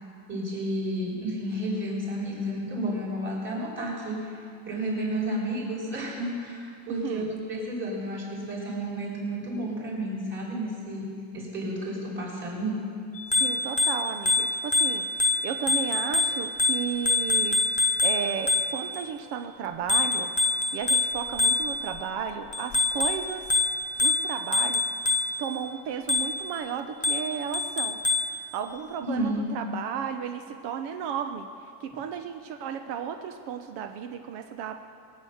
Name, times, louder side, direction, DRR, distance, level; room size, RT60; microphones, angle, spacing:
voice 1, 0.3-4.4 4.7-12.8 29.0-29.4, right 1 dB, 30° right, -4 dB, 3.9 m, -31 dB
Bicycle bell, 13.2-19.0 19.9-22.0 22.5-25.5 26.1-26.5 27.0-28.4, left 2 dB, 20° left, 1.0 m, -26 dB
voice 2, 13.3-17.6 18.0-20.3 20.7-23.5 24.0-24.8 25.4-28.0 28.5-31.5 31.8-34.8, right 7 dB, 90° right, 6 dB, 0.9 m, -34 dB
21.5 x 8.5 x 6.5 m, 2.3 s
cardioid pair, 180°, 40 cm